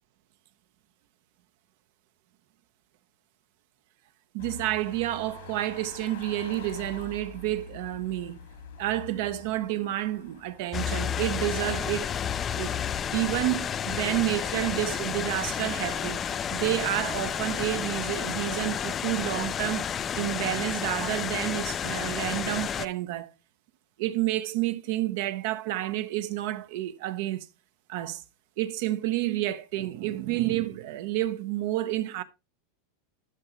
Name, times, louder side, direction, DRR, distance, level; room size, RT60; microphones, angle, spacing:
voice 1, 4.3-8.4 8.8-12.2 12.5-12.8 13.1-19.9 20.2-23.3 24.0-27.5 27.9-28.2 28.6-32.2, right 15 dB, 65° right, 0.8 m, -30 dB
sound 1, 4.4-15.8, left 4 dB, 85° left, 2.1 m, -47 dB
sound 2, 10.7-22.9, left 8 dB, 25° left, 0.4 m, -31 dB
12.0 x 5.6 x 3.0 m
supercardioid pair, 130°, 0 cm